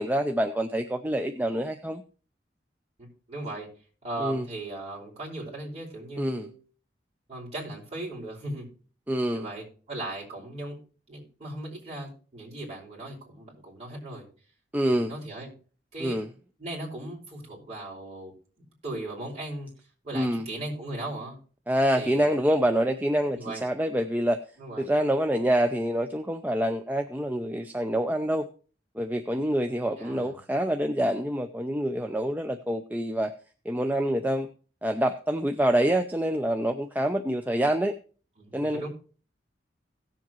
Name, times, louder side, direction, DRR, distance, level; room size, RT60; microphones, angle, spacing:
voice 1, 0.0-2.0 4.2-4.5 6.2-6.5 9.1-9.5 14.7-15.1 16.0-16.3 20.1-20.5 21.7-24.4 24.8-28.5 29.0-33.3 33.7-34.5 34.8-37.9 38.5-38.9, right 1 dB, 10° right, 5 dB, 0.5 m, -26 dB
voice 2, 3.0-3.7 4.0-6.6 7.3-8.7 9.3-10.8 11.1-14.2 14.8-15.5 15.9-16.2 16.6-19.7 20.0-21.4 21.9-22.3 23.3-23.6 24.6-24.9 30.0-30.3 38.4-38.9, right 2 dB, 35° right, -3 dB, 5.0 m, -38 dB
17.0 x 7.3 x 3.0 m, 0.39 s
head